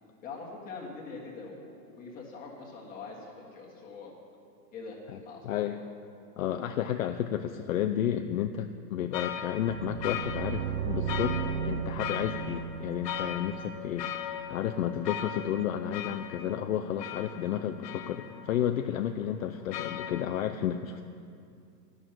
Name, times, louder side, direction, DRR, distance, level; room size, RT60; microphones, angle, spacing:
voice 1, 0.2-4.1 4.7-5.8, left 4 dB, 15° left, -3 dB, 1.6 m, -43 dB
voice 2, 5.4-5.8 6.4-11.4 11.6-14.1 14.5-21.0, left 10 dB, 55° left, 6 dB, 0.5 m, -32 dB
sound 1, 9.1-20.2, left 9 dB, 75° left, 0.9 m, -39 dB
sound 2, 9.5-14.5, right 7 dB, 65° right, 0.7 m, -35 dB
11.0 x 6.4 x 8.8 m, 2.4 s
hypercardioid pair, 160°, 50 cm